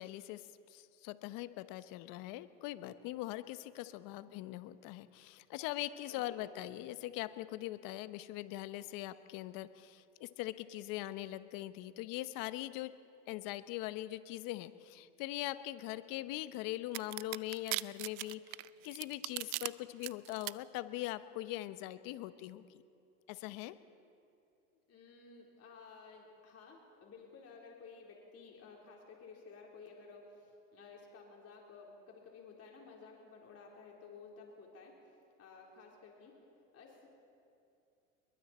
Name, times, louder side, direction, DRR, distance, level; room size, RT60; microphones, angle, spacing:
voice 1, 0.0-12.9 13.3-22.8 23.3-23.8, left 16 dB, 55° left, 13 dB, 1.1 m, -42 dB
voice 2, 6.1-6.4 24.7-35.0 35.4-36.4 36.7-37.1, left 4 dB, 40° left, -1 dB, 4.1 m, -54 dB
sound 1, 16.9-19.7 20.0-20.5, right 24 dB, 65° right, 0.7 m, -38 dB
27.0 x 22.5 x 4.4 m, 2.5 s
hypercardioid pair, 100°, 39 cm